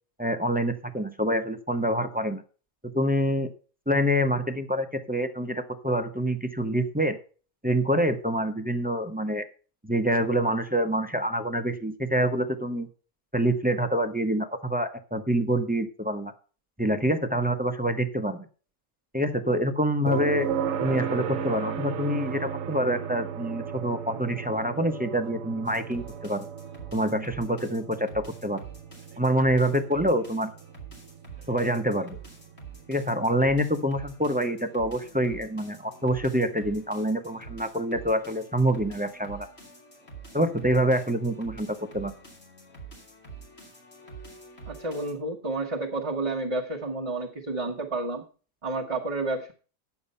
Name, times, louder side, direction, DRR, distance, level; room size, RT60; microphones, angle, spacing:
voice 1, 0.2-2.4 2.8-3.5 3.9-7.2 7.6-9.4 9.8-12.9 13.3-16.3 16.8-18.4 19.1-20.5 20.8-26.5 26.9-28.6 29.2-30.5 31.5-32.2 32.9-39.5 40.3-42.1, equal, 10° right, 7 dB, 0.7 m, -26 dB
sound 1, 20.1-33.9 36.2-36.3, right 7 dB, 70° right, 1.2 m, -35 dB
sound 2, 25.6-45.1, right 5 dB, 45° left, 3.3 m, -47 dB
voice 2, 44.7-48.2 48.6-49.5, right 2 dB, 25° right, -2 dB, 1.3 m, -30 dB
10.5 x 7.1 x 5.4 m, 0.38 s
omnidirectional pair, 1.5 m